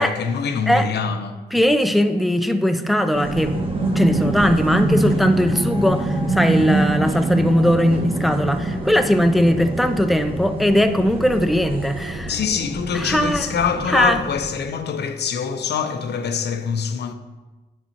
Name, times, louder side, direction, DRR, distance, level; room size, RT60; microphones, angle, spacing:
voice 1, 0.0-1.4 12.3-17.1, left 6 dB, 70° left, 0.6 m, -24 dB
voice 2, 1.5-3.7 4.0-12.3 12.9-13.5 13.9-14.2, equal, ahead, 0.5 m, -19 dB
sound 1, 3.1-14.5, right 2 dB, 30° right, 1.3 m, -24 dB
8.6 x 7.0 x 2.8 m
cardioid pair, 85°, 18 cm